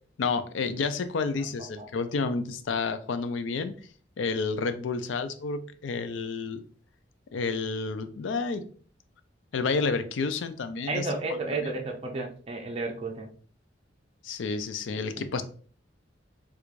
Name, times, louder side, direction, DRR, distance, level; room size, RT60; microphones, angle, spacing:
voice 1, 0.2-3.7 4.2-6.6 7.3-8.6 9.5-11.1 11.6-11.7 14.2-15.4, left 4 dB, 85° left, 10 dB, 0.4 m, -30 dB
voice 2, 10.9-13.3 15.2-15.4, right 3 dB, 30° right, 2 dB, 0.5 m, -32 dB
4.5 x 2.4 x 2.4 m, 0.43 s
head